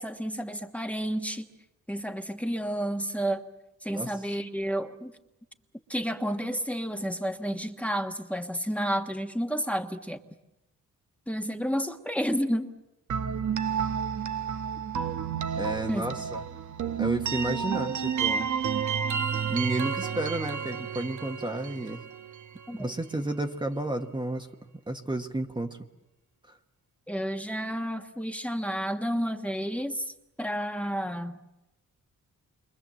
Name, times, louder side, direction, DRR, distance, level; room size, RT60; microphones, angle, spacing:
voice 1, 0.0-1.5 1.9-3.4 3.8-5.1 5.9-10.2 11.3-12.7 15.9-16.1 22.7-22.9 27.1-31.4, equal, 5° left, 5 dB, 1.4 m, -31 dB
sound 1, 13.1-22.9, right 7 dB, 65° right, 1.3 m, -31 dB
voice 2, 15.6-16.4 17.0-18.5 19.5-22.0 22.7-25.8, right 2 dB, 15° right, 4 dB, 1.3 m, -32 dB
29.0 x 24.0 x 7.7 m, 0.92 s
wide cardioid pair, 135°, 32 cm